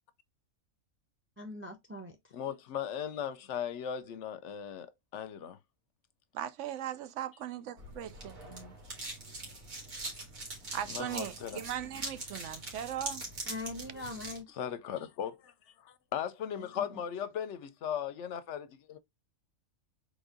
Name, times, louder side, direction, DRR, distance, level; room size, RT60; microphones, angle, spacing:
voice 1, 1.4-2.2 13.5-14.5 16.6-16.9, left 2 dB, 10° right, 0.7 m, -42 dB
voice 2, 2.3-5.6 10.9-11.6 14.5-19.0, left 9 dB, 65° left, 0.8 m, -38 dB
voice 3, 6.3-8.7 10.7-13.2, right 10 dB, 65° right, 0.9 m, -39 dB
sound 1, 7.8-14.4, right 2 dB, 85° right, 2.4 m, -42 dB
4.1 x 3.5 x 3.7 m
omnidirectional pair, 1.4 m